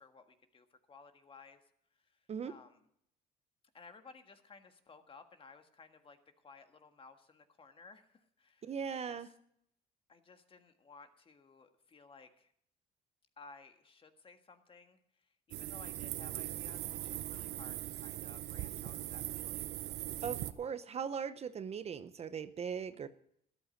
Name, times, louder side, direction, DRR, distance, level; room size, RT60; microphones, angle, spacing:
voice 1, 0.0-1.6 2.0-2.8 3.7-9.3 10.1-12.5 13.4-19.7, left 4 dB, 30° left, 7 dB, 1.6 m, -58 dB
voice 2, 8.6-9.3 20.2-23.1, right 7 dB, 40° right, 12 dB, 0.8 m, -39 dB
sound 1, 15.5-20.5, right 15 dB, 80° right, 0.7 m, -40 dB
13.0 x 12.0 x 5.1 m, 0.69 s
cardioid pair, 110°, 17 cm